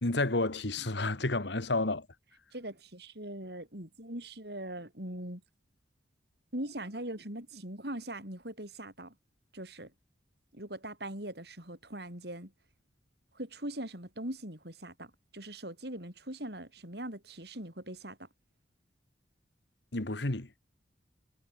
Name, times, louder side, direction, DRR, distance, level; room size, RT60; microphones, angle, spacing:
voice 1, 0.0-2.1 19.9-20.5, left 2 dB, 70° left, 1.8 m, -30 dB
voice 2, 2.5-5.4 6.5-9.1 9.5-9.9 10.5-12.5 13.3-18.3, right 1 dB, 60° right, 6.9 m, -41 dB
head